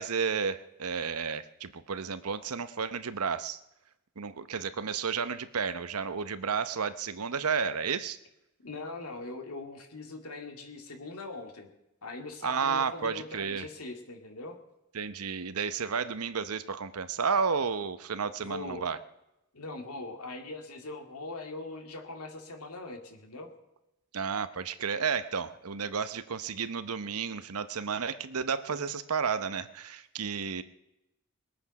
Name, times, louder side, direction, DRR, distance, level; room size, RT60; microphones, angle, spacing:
voice 1, 0.0-3.6 4.2-8.2 12.4-13.7 14.9-19.0 24.1-30.6, right 6 dB, 90° right, 12 dB, 0.8 m, -32 dB
voice 2, 8.6-11.7 12.0-14.6 18.4-18.9 19.5-23.5, left 2 dB, 90° left, 4 dB, 2.3 m, -41 dB
21.5 x 8.8 x 6.0 m, 0.90 s
head